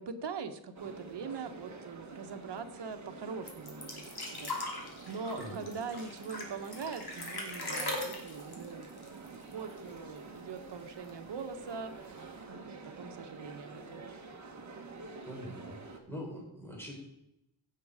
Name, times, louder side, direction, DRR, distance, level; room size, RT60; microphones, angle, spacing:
voice 1, 0.0-4.0 4.3-12.1 12.5-14.0, right 5 dB, 65° right, 6 dB, 1.3 m, -42 dB
sound 1, 0.7-16.0, right 3 dB, 40° right, 1.5 m, -48 dB
sound 2, 3.5-9.9 10.2-10.3 10.6-11.3 12.1-12.2, left 2 dB, 55° left, 2.9 m, -40 dB
voice 2, 15.2-16.9, equal, 5° left, -2 dB, 4.1 m, -43 dB
16.5 x 7.8 x 5.0 m, 0.85 s
wide cardioid pair, 155°, 45 cm